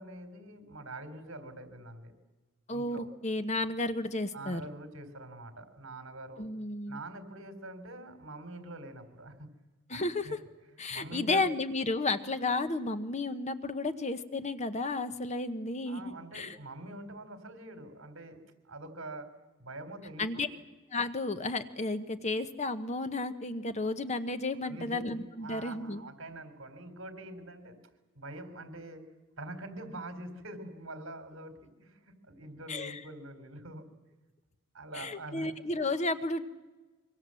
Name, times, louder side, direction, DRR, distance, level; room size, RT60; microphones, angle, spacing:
voice 1, 0.0-2.1 2.7-3.1 4.3-6.5 6.9-9.5 9.9-10.4 10.9-11.5 15.9-18.4 18.6-19.3 19.6-20.5 24.6-25.0 25.4-27.8 28.2-29.0 29.4-33.9 34.7-35.5, right 2 dB, 70° right, 9 dB, 3.5 m, -45 dB
voice 2, 2.7-4.6 6.4-7.0 9.9-10.4 10.8-16.6 20.2-20.5 20.9-26.0 32.7-33.0 34.9-36.4, left 2 dB, 35° left, 10 dB, 1.0 m, -33 dB
25.0 x 24.0 x 7.6 m, 1.2 s
head